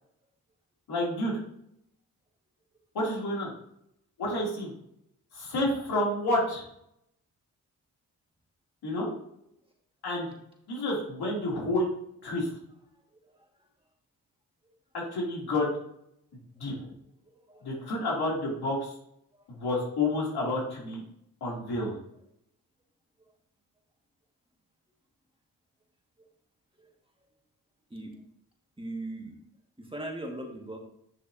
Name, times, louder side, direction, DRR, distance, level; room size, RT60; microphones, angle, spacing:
voice 1, 0.9-1.4 2.9-3.5 4.2-4.7 5.3-6.6 8.8-9.1 10.0-10.3 10.7-11.9 12.2-12.5 14.9-15.7 16.6-16.9 17.6-18.9 19.5-21.0 21.4-22.0, left 1 dB, 80° left, -4 dB, 3.0 m, -29 dB
voice 2, 17.2-17.9 19.3-19.4 26.2-26.3 26.8-26.9 27.9-28.2 28.8-29.4 29.8-30.8, right 1 dB, 15° right, 1 dB, 1.8 m, -40 dB
8.9 x 6.3 x 2.8 m, 0.75 s
cardioid pair, 60°, 37 cm